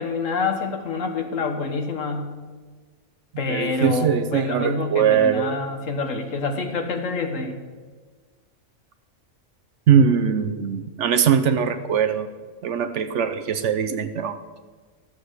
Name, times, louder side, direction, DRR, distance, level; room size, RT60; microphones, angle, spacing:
voice 1, 0.0-2.3 3.4-7.6, left 4 dB, 65° left, 5 dB, 1.6 m, -27 dB
voice 2, 3.5-5.5 9.9-12.3 12.6-14.4, right 7 dB, 65° right, 10 dB, 0.9 m, -21 dB
13.5 x 7.5 x 6.3 m, 1.4 s
omnidirectional pair, 1.4 m